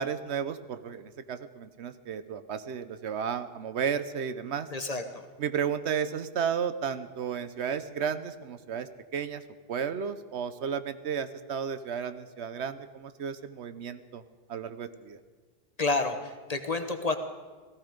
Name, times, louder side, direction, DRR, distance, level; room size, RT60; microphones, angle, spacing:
voice 1, 0.0-4.7 5.4-9.4 9.7-14.2 14.5-15.2, right 7 dB, 70° right, 11 dB, 1.0 m, -33 dB
voice 2, 4.7-5.2 15.8-17.2, left 3 dB, 35° left, 7 dB, 1.0 m, -30 dB
17.5 x 15.0 x 5.1 m, 1.4 s
omnidirectional pair, 1.2 m